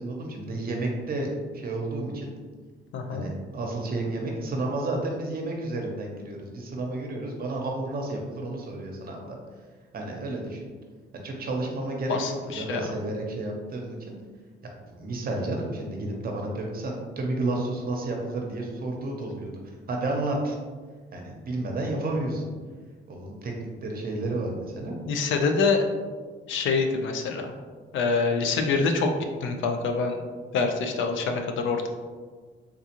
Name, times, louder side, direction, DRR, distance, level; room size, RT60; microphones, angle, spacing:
voice 1, 0.0-2.3 3.1-9.4 9.9-10.7 11.1-14.1 14.6-20.6 21.1-22.5 23.1-24.9, right 2 dB, 50° right, 1 dB, 0.7 m, -31 dB
voice 2, 2.9-3.3 12.1-12.9 25.1-25.8 26.5-27.5 27.9-29.1 29.4-30.2 30.5-31.9, left 4 dB, 75° left, 5 dB, 0.5 m, -25 dB
3.6 x 2.4 x 2.9 m, 1.5 s
cardioid pair, 90°, 20 cm